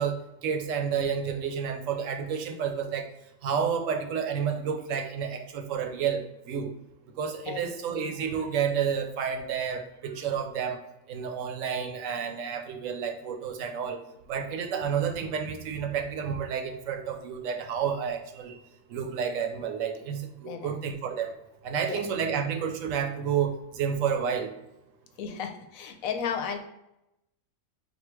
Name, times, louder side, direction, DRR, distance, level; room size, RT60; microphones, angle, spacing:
voice 1, 0.0-3.1 3.4-6.7 7.2-10.8 11.1-14.0 14.3-18.6 18.9-21.3 21.6-24.5, right 7 dB, 70° right, 6 dB, 1.0 m, -30 dB
voice 2, 20.4-20.8 21.9-22.0 25.2-26.6, left 7 dB, 80° left, 6 dB, 1.0 m, -34 dB
3.9 x 2.7 x 4.5 m, 0.87 s
omnidirectional pair, 1.4 m